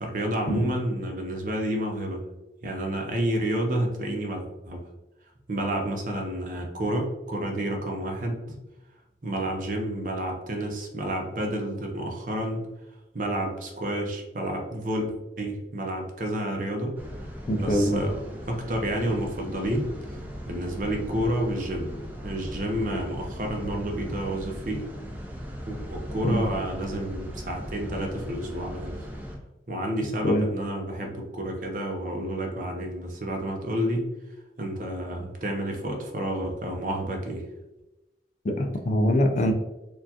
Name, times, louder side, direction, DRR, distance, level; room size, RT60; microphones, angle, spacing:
voice 1, 0.0-2.2 2.6-4.8 5.5-8.6 9.2-12.7 13.1-15.1 15.4-17.0 17.6-18.2 18.5-20.2 20.5-22.0 22.2-24.9 25.7-29.0 29.7-34.1 34.6-37.5, right 1 dB, 45° right, 2 dB, 0.7 m, -30 dB
sound 1, 17.0-29.4, equal, 10° right, 0.6 m, -38 dB
voice 2, 17.5-18.1 26.2-26.4 30.2-30.5 38.4-39.5, equal, 40° left, 5 dB, 0.4 m, -23 dB
4.4 x 2.3 x 2.8 m, 0.98 s
head